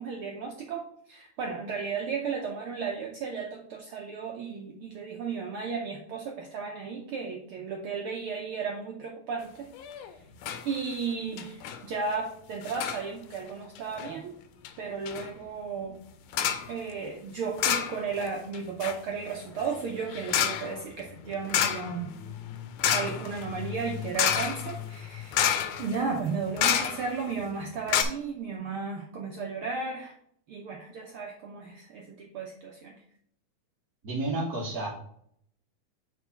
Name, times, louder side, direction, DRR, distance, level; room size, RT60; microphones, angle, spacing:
voice 1, 0.0-10.2 10.6-14.4 14.8-16.0 16.7-22.1 22.9-30.1 30.5-33.0, right 5 dB, 90° right, 1 dB, 1.2 m, -34 dB
sound 1, 9.8-10.1 10.4-10.6 10.9-11.0 11.4-11.8 12.6-13.0 13.8-14.1 14.6-14.7 15.1-15.3 16.3-16.7 17.6-18.3 18.5-27.3 27.6-27.7 27.9-28.0, left 9 dB, 80° left, 2.1 m, -29 dB
voice 2, 34.0-34.9, right 2 dB, 50° right, -3 dB, 1.1 m, -30 dB
4.8 x 4.7 x 5.7 m, 0.67 s
omnidirectional pair, 3.4 m